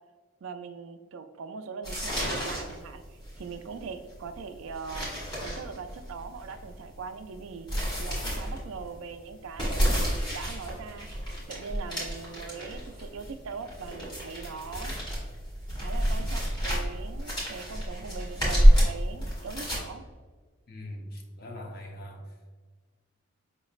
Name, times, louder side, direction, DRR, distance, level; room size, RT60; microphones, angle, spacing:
voice 1, 0.4-5.1 5.4-7.7 8.0-11.1 11.5-14.9 15.8-20.0, right 5 dB, 70° right, 9 dB, 0.3 m, -41 dB
sound 1, 1.8-19.8, equal, 20° left, 1.5 m, -28 dB
voice 2, 20.7-22.4, left 1 dB, 45° left, 2 dB, 0.6 m, -41 dB
5.2 x 3.0 x 2.4 m, 1.4 s
head